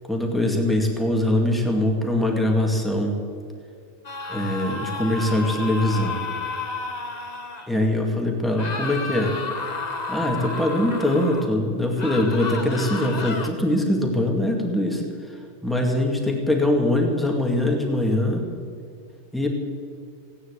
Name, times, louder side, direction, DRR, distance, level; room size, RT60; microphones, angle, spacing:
voice 1, 0.1-3.2 4.3-6.2 7.7-9.3 10.1-15.0 15.6-18.4 19.3-19.5, left 1 dB, ahead, 1 dB, 2.1 m, -22 dB
sound 1, 4.0-7.7 8.6-11.5 12.0-13.5, left 3 dB, 35° left, 1.3 m, -31 dB
18.0 x 9.6 x 8.3 m, 2.3 s
omnidirectional pair, 1.2 m